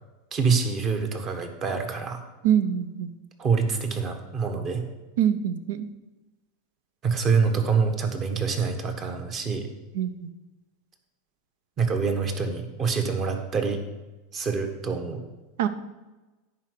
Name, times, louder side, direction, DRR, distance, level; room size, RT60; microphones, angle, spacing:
voice 1, 0.3-2.2 3.4-4.8 7.0-9.7 11.8-13.8 14.3-15.2, right 5 dB, 35° right, 6 dB, 1.5 m, -26 dB
voice 2, 2.4-3.1 5.2-5.9 9.9-10.3 15.6-15.7, right 9 dB, 75° right, 12 dB, 0.8 m, -24 dB
10.5 x 4.9 x 6.7 m, 1.1 s
supercardioid pair, 130°, 0 cm